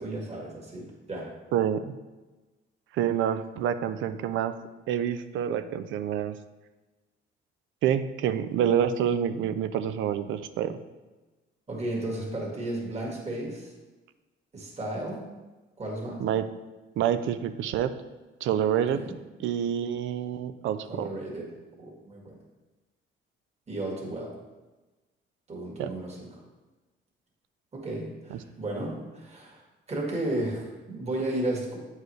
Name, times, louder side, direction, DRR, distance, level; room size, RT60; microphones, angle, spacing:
voice 1, 0.0-1.3 11.7-13.7 14.5-15.2 15.8-16.2 18.9-19.2 20.9-22.4 23.7-24.3 25.5-26.4 27.7-29.6 29.9-31.8, right 1 dB, 35° right, -3 dB, 1.8 m, -34 dB
voice 2, 1.5-1.9 2.9-4.5 4.9-6.4 7.8-10.8 16.2-16.5 17.0-17.9 18.4-19.0 19.4-21.1 25.8-25.9, right 9 dB, 80° right, 11 dB, 0.5 m, -27 dB
8.2 x 4.6 x 3.1 m, 1.2 s
cardioid pair, 90°, 20 cm